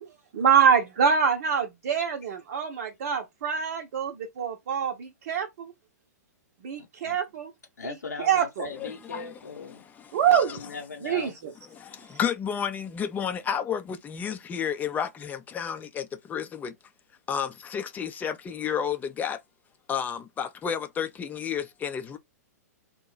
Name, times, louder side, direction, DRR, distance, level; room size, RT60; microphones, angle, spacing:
voice 1, 0.3-5.7 6.6-7.5 7.8-8.7 10.1-10.5 11.0-11.5, right 7 dB, 55° right, 0.7 m, -25 dB
voice 2, 6.7-7.2 7.8-9.9 10.3-11.3, left 4 dB, 85° left, 0.8 m, -39 dB
voice 3, 8.8-9.3 10.1-10.2 11.7-16.7 17.3-19.4 19.9-22.2, left 8 dB, 20° left, 0.5 m, -31 dB
2.9 x 2.2 x 3.8 m
hypercardioid pair, 110°, 9 cm